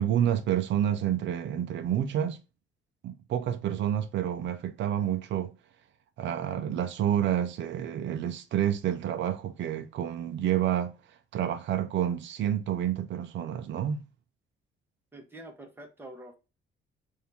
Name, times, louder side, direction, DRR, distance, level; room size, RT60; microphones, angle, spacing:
voice 1, 0.0-2.4 3.0-5.5 6.2-10.9 11.3-14.0, right 10 dB, 65° right, 0.6 m, -29 dB
voice 2, 15.1-16.3, right 1 dB, 10° right, 1.2 m, -46 dB
4.3 x 2.7 x 3.4 m
cardioid pair, 140°, 20 cm